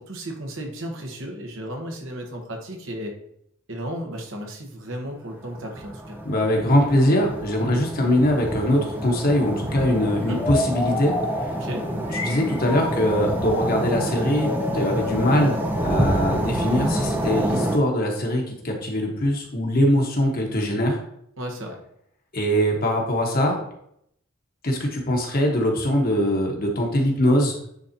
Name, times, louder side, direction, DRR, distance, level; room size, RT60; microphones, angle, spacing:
voice 1, 0.0-3.2 3.7-6.2 10.3-10.4 11.6-11.9 21.4-21.8, equal, 60° right, 2 dB, 1.3 m, -34 dB
sound 1, 5.4-17.8, right 1 dB, 10° right, 0.6 m, -28 dB
voice 2, 6.2-11.1 12.2-14.5 14.7-21.0 22.3-23.6 24.6-27.5, equal, 40° left, 1 dB, 1.3 m, -22 dB
sound 2, 10.3-17.0, left 2 dB, 20° left, 1.1 m, -31 dB
9.4 x 4.0 x 2.9 m, 0.72 s
head